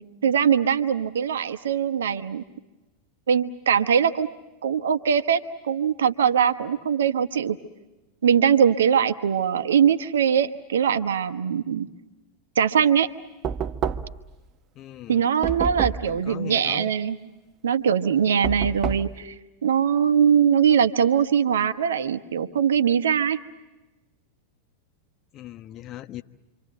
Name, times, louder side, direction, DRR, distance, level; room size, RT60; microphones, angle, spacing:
voice 1, 0.0-2.4 3.3-4.3 4.6-7.6 8.2-11.9 12.6-13.1 15.1-17.2 17.6-19.3 19.6-23.4, right 8 dB, 70° right, 11 dB, 1.1 m, -21 dB
Knock, 13.4-14.3 15.4-16.2 18.4-19.2, right 7 dB, 35° right, 1.0 m, -28 dB
voice 2, 14.8-15.3 16.0-16.9 25.3-26.2, left 13 dB, 40° left, 10 dB, 1.1 m, -39 dB
28.0 x 25.5 x 7.8 m, 1.1 s
figure-of-eight pair, 90°, 0 cm